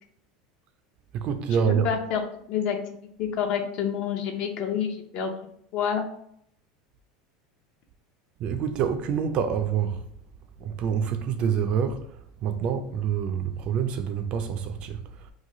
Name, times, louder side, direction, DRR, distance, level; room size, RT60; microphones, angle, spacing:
voice 1, 1.1-1.9 8.4-10.0 10.6-15.3, right 7 dB, 45° right, 0.4 m, -27 dB
voice 2, 1.7-2.2 2.5-2.8 3.2-5.3 5.7-6.1, left 7 dB, 55° left, 0.6 m, -28 dB
3.0 x 2.3 x 3.8 m
supercardioid pair, 135°, 3 cm